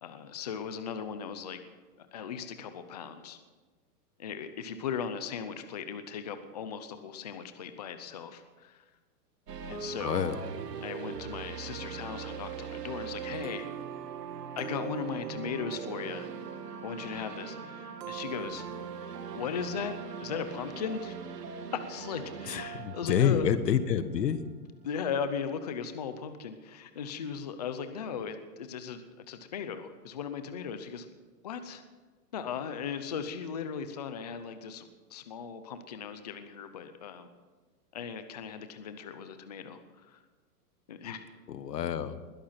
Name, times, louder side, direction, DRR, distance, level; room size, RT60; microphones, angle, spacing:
voice 1, 0.0-1.6 2.0-3.4 4.2-8.8 9.7-10.2 10.8-13.7 14.6-16.3 16.8-18.7 19.3-21.2 21.7-23.5 24.8-31.1 31.4-31.8 32.3-37.3 37.9-40.2 40.9-41.2, left 7 dB, 25° left, 9 dB, 0.6 m, -37 dB
sound 1, 9.5-24.3, right 7 dB, 85° right, 2.2 m, -40 dB
voice 2, 10.0-10.4 22.5-24.4 41.5-42.2, left 8 dB, 90° left, 12 dB, 1.5 m, -28 dB
20.5 x 11.5 x 5.8 m, 1.3 s
hypercardioid pair, 180°, 47 cm